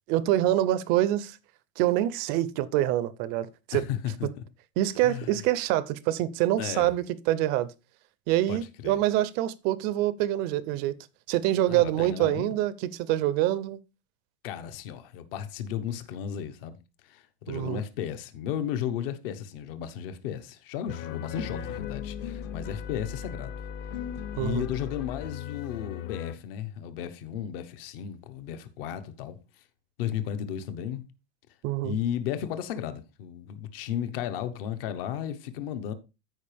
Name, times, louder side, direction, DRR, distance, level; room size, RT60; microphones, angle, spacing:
voice 1, 0.1-1.4 1.8-3.9 4.8-7.7 8.3-11.0 11.3-13.8 17.5-17.8 24.4-24.7 31.6-32.0, right 14 dB, 30° right, 0.4 m, -26 dB
voice 2, 3.7-4.4 5.0-5.4 6.6-6.9 8.5-9.0 11.7-12.5 14.4-16.8 17.0-23.5 24.3-29.4 30.0-31.0 31.8-35.9, left 9 dB, 60° left, 1.1 m, -34 dB
sound 1, 20.9-26.4, left 9 dB, 35° left, 0.6 m, -37 dB
14.0 x 5.0 x 3.4 m
supercardioid pair, 175°, 32 cm